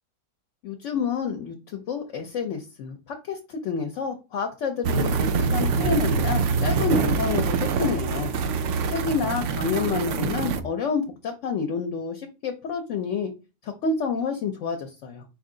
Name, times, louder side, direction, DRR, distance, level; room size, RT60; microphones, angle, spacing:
voice 1, 0.6-8.3 8.9-13.3 13.6-15.2, left 5 dB, 65° left, 4 dB, 0.9 m, -29 dB
sound 1, 4.8-10.6, right 5 dB, 70° right, 0.8 m, -24 dB
4.5 x 3.1 x 3.7 m, 0.29 s
omnidirectional pair, 1.5 m